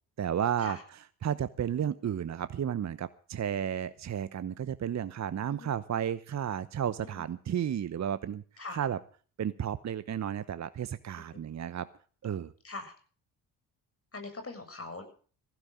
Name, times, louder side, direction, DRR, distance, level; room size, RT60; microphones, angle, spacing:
voice 1, 0.2-0.8 1.2-8.4 8.7-9.0 9.4-11.9 12.2-12.5, right 9 dB, 35° right, 14 dB, 1.0 m, -32 dB
voice 2, 14.1-15.0, left 3 dB, 30° left, 6 dB, 7.3 m, -42 dB
20.0 x 15.5 x 3.7 m, 0.42 s
hypercardioid pair, 50°, 46 cm